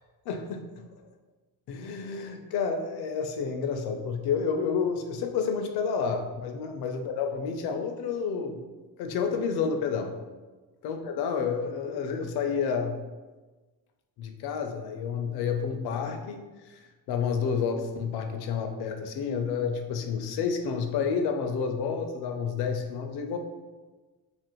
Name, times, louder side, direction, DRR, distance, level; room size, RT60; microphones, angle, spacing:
voice 1, 0.3-0.8 1.7-8.6 9.0-10.2 10.8-13.0 14.2-23.4, left 6 dB, 75° left, 5 dB, 0.5 m, -30 dB
2.9 x 2.5 x 2.9 m, 1.2 s
cardioid pair, 110°, 38 cm